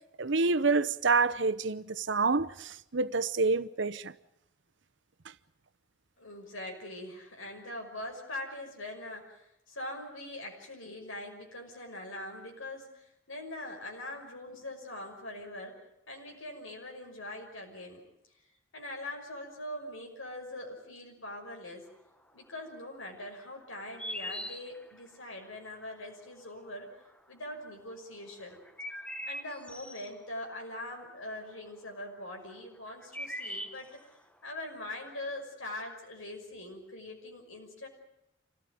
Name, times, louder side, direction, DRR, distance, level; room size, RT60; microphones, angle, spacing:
voice 1, 0.2-4.1, right 4 dB, 65° right, 0.9 m, -27 dB
voice 2, 6.2-15.8 16.1-18.0 18.7-21.9 22.3-26.9 27.3-28.6 29.3-33.9 34.4-37.9, left 1 dB, 85° left, 6.0 m, -42 dB
sound 1, 23.7-25.1 27.0-27.1 28.4-30.1 32.6-32.7 32.9-34.1, equal, 5° left, 1.0 m, -40 dB
26.5 x 16.5 x 9.3 m
head